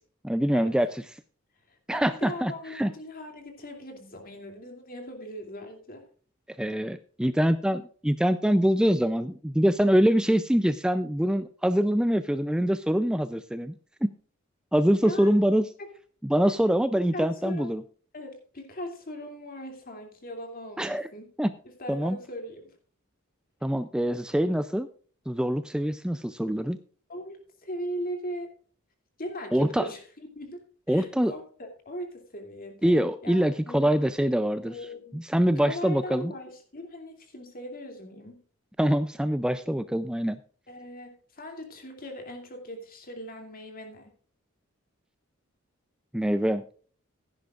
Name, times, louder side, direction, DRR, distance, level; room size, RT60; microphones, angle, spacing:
voice 1, 0.2-0.9 1.9-2.9 6.6-13.8 14.7-15.7 16.2-17.8 20.8-21.1 21.4-21.5 21.9-22.2 23.6-24.9 25.3-26.8 29.5-29.9 30.9-31.3 32.8-34.7 35.1-36.3 38.8-40.4 46.1-46.6, equal, 5° right, 11 dB, 0.4 m, -24 dB
voice 2, 1.7-6.0 15.0-15.4 15.8-15.9 16.5-16.6 17.1-17.7 18.1-21.3 21.6-22.8 23.6-23.7 24.3-24.5 27.1-28.5 29.2-31.4 31.8-33.0 33.2-33.9 34.6-35.2 35.5-38.4 40.7-44.1, equal, 45° left, 4 dB, 2.7 m, -39 dB
16.0 x 10.5 x 2.4 m, 0.44 s
head